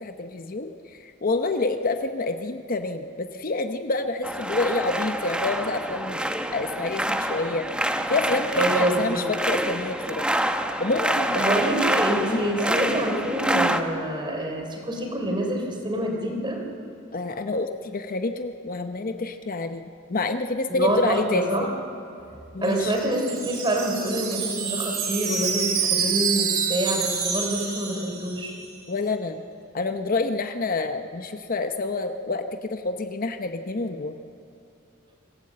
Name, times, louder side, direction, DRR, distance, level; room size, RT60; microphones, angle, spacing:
voice 1, 0.0-6.2 6.5-7.7 8.1-10.3 10.8-11.5 12.3-12.5 17.1-21.7 22.5-22.9 28.9-29.4 29.7-34.1, left 3 dB, 45° left, 7 dB, 0.8 m, -28 dB
sound 1, 4.2-13.8, right 1 dB, 5° right, 0.8 m, -27 dB
voice 2, 8.5-9.2 11.3-16.6 20.7-21.7 22.6-28.6, right 1 dB, 25° right, 2 dB, 3.4 m, -26 dB
Wind chime, 22.6-28.6, right 6 dB, 50° right, 5.3 m, -27 dB
25.0 x 16.0 x 7.6 m, 2.7 s
head